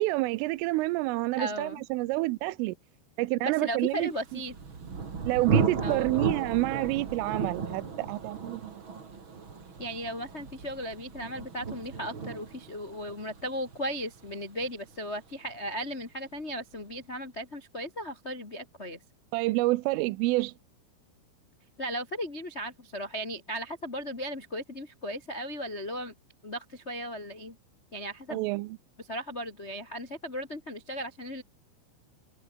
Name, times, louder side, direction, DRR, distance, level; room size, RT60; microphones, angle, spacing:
voice 1, 0.0-2.7 3.2-4.1 5.2-8.8 19.3-20.5 28.3-28.8, right 20 dB, 85° right, 3.3 m, -28 dB
voice 2, 1.3-1.8 3.4-4.5 5.8-6.3 9.8-19.0 21.8-26.1 26.4-27.5 27.9-28.4 29.0-31.4, equal, 75° left, 0.6 m, -36 dB
Thunder, 4.1-15.7, right 5 dB, 30° right, 2.8 m, -34 dB
omnidirectional pair, 5.8 m